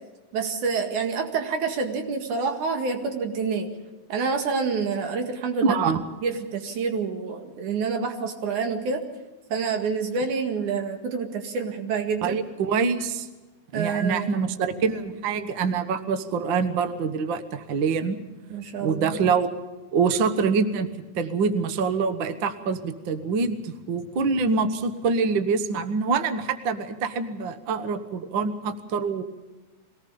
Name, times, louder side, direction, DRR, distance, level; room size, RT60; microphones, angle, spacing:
voice 1, 0.3-3.7 4.1-5.8 6.2-9.0 9.5-12.4 13.7-14.5 18.5-19.2, right 5 dB, 85° right, 5 dB, 3.5 m, -27 dB
voice 2, 5.6-6.0 12.2-13.3 13.7-18.2 18.8-19.5 19.9-20.9 21.1-29.2, right 5 dB, 50° right, 10 dB, 1.6 m, -25 dB
23.5 x 18.0 x 6.9 m, 1.2 s
omnidirectional pair, 3.4 m